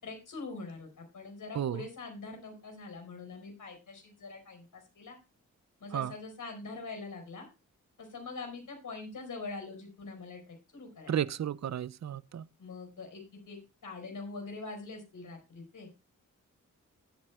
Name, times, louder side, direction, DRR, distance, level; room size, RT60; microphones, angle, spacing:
voice 1, 0.0-5.2 5.8-7.5 8.0-11.2 12.6-15.9, left 3 dB, 70° left, 5.0 m, -44 dB
voice 2, 11.1-12.4, right 10 dB, 55° right, 0.5 m, -33 dB
16.5 x 8.7 x 2.3 m
cardioid pair, 55°, 32 cm